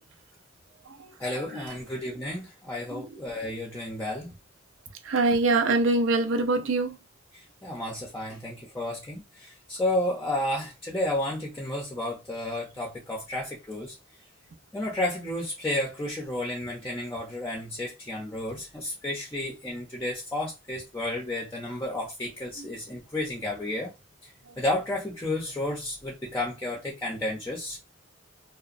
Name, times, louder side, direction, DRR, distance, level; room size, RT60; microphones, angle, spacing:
voice 1, 1.2-4.3 7.3-13.9 14.7-23.9 24.2-24.3 24.6-27.8, left 1 dB, 10° left, 0.6 m, -32 dB
voice 2, 5.0-7.0 22.6-22.7 24.5-24.6, right 3 dB, 70° right, 0.5 m, -25 dB
2.8 x 2.0 x 2.5 m
head